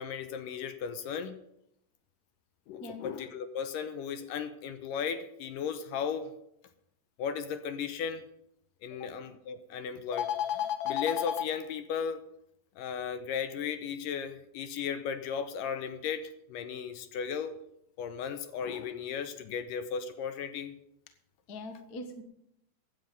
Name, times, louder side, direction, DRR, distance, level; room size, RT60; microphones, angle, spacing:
voice 1, 0.0-1.4 2.7-6.3 7.2-8.2 8.8-12.3 12.8-17.6 18.0-20.8, left 7 dB, 75° left, 10 dB, 2.3 m, -35 dB
voice 2, 21.5-22.2, left 1 dB, 55° left, 7 dB, 1.0 m, -42 dB
15.5 x 10.5 x 5.4 m, 0.78 s
omnidirectional pair, 4.2 m